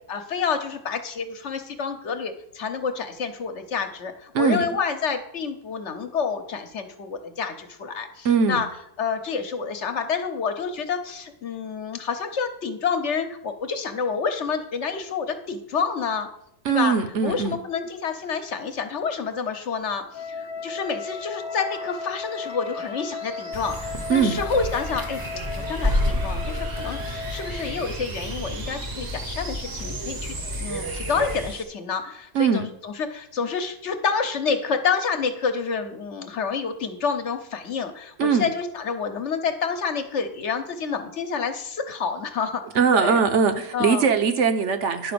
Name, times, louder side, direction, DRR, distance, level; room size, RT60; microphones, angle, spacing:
voice 1, 0.1-8.7 9.0-16.3 16.7-16.9 17.2-25.2 25.7-42.6 42.9-43.2 43.7-44.1, left 5 dB, 55° left, 8 dB, 1.2 m, -28 dB
voice 2, 4.3-4.6 8.2-8.6 16.6-17.6 24.1-24.4 32.3-32.7 38.2-38.5 42.7-45.1, right 6 dB, 60° right, 8 dB, 1.1 m, -21 dB
sound 1, 19.8-31.6, right 4 dB, 80° right, 1.6 m, -41 dB
Wind instrument woodwind instrument, 20.1-27.8, left 5 dB, 85° left, 1.1 m, -36 dB
sound 2, 23.5-31.5, left 1 dB, 20° right, 0.8 m, -30 dB
10.0 x 5.1 x 6.9 m, 0.74 s
omnidirectional pair, 1.5 m